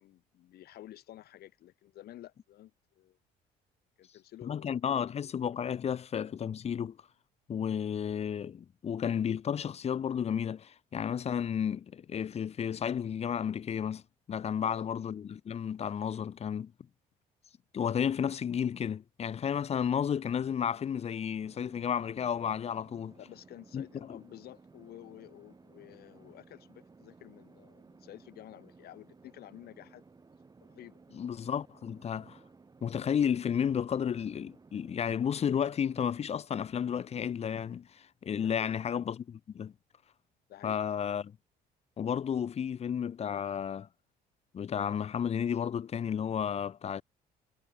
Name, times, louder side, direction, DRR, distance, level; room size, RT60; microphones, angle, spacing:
voice 1, 0.0-3.2 4.0-5.2 14.6-14.9 23.2-30.0 30.6-31.0 38.4-38.8 40.5-40.8, left 13 dB, 70° left, 2.3 m, -51 dB
voice 2, 4.4-7.0 7.5-14.0 14.3-16.7 17.7-23.1 23.7-24.2 31.1-32.4 32.8-39.7 40.6-41.3 42.0-43.9 44.5-47.0, left 8 dB, 40° left, 0.9 m, -32 dB
sound 1, 21.4-36.3, right 4 dB, 25° right, 5.3 m, -58 dB
cardioid pair, 110°, 17 cm